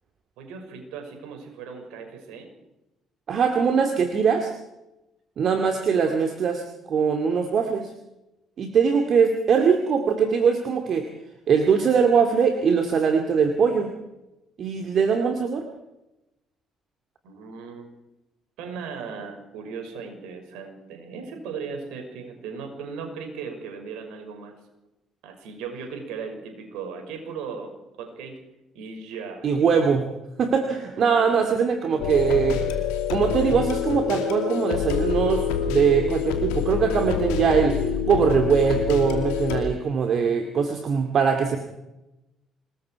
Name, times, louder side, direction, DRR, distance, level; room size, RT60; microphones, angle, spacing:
voice 1, 0.4-2.5 5.8-6.3 17.2-17.9 18.6-24.5 25.2-27.7 28.0-28.4 28.7-29.8 30.8-31.6, right 5 dB, 70° right, 4 dB, 6.0 m, -37 dB
voice 2, 3.3-4.5 5.4-7.9 8.6-11.1 11.5-13.9 14.6-15.6 29.4-32.6 33.1-41.6, right 6 dB, 50° right, 5 dB, 2.5 m, -22 dB
sound 1, 32.0-39.6, left 8 dB, 75° left, 2.5 m, -26 dB
27.0 x 20.5 x 4.7 m, 0.93 s
figure-of-eight pair, 50°, 0 cm